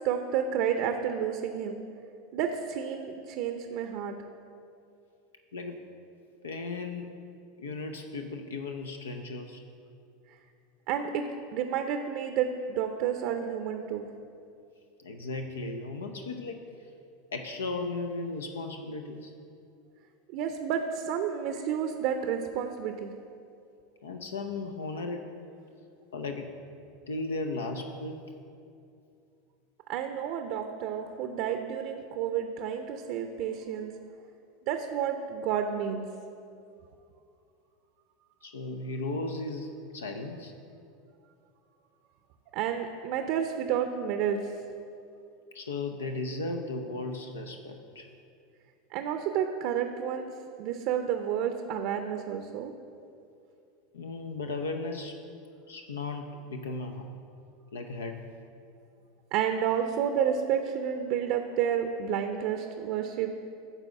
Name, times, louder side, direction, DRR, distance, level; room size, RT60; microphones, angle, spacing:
voice 1, 0.0-1.8 2.3-4.1 10.9-11.3 11.5-14.1 20.3-23.1 29.9-33.9 34.7-36.1 42.5-44.5 48.9-50.3 50.6-52.7 59.3-63.3, right 8 dB, 60° right, 6 dB, 0.5 m, -30 dB
voice 2, 6.4-7.1 7.6-9.6 15.0-16.6 17.3-19.3 24.0-25.2 26.1-26.5 27.1-28.2 38.4-40.5 45.5-48.1 53.9-55.2 55.7-57.1 57.7-58.3, left 3 dB, 85° left, 5 dB, 0.5 m, -36 dB
9.0 x 4.0 x 7.1 m, 2.5 s
hypercardioid pair, 85°, 0 cm